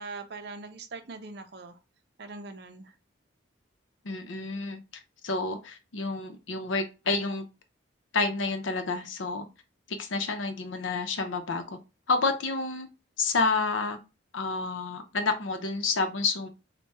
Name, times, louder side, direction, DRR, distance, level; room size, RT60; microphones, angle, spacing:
voice 1, 0.0-1.8 2.2-2.9, right 3 dB, 55° right, 0.5 m, -41 dB
voice 2, 4.0-4.8 5.2-7.5 8.1-9.5 9.9-11.8 12.1-12.9 13.2-14.0 14.3-16.5, left 3 dB, 80° left, 0.7 m, -29 dB
3.5 x 2.2 x 4.1 m
head